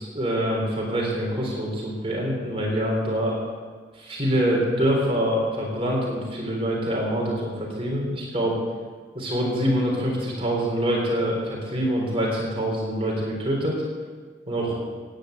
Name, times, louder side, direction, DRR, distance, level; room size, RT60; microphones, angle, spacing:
voice 1, 0.1-3.4 4.0-8.6 9.1-13.8 14.5-14.8, equal, 30° right, -2 dB, 3.8 m, -25 dB
17.0 x 9.6 x 8.0 m, 1.5 s
head